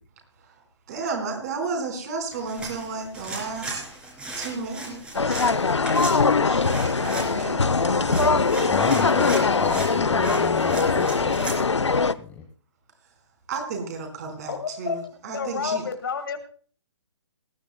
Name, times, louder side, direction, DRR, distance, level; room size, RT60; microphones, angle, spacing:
voice 1, 0.9-3.8 4.3-5.5 6.2-8.4 13.5-15.8, right 4 dB, 35° right, 4 dB, 4.7 m, -33 dB
sound 1, 2.3-11.6, right 2 dB, 5° right, 3.1 m, -36 dB
sound 2, 5.1-12.1, left 4 dB, 70° left, 0.7 m, -22 dB
voice 2, 8.7-12.4, left 8 dB, 10° left, 4 dB, 1.0 m, -31 dB
voice 3, 14.5-16.4, left 6 dB, 50° left, 8 dB, 2.0 m, -30 dB
19.5 x 14.5 x 2.2 m, 0.43 s
figure-of-eight pair, 135°, 15 cm